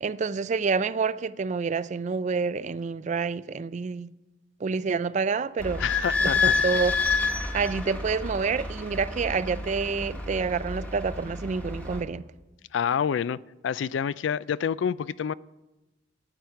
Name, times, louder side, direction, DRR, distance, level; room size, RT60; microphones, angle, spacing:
voice 1, 0.0-4.1 4.6-5.8 6.4-7.0 7.3-12.2, right 5 dB, 40° right, 0.3 m, -28 dB
Idling / Squeak, 5.6-12.0, left 4 dB, 10° left, 1.4 m, -29 dB
voice 2, 5.8-6.6 12.7-15.3, left 7 dB, 70° left, 0.3 m, -28 dB
14.0 x 9.1 x 5.7 m
head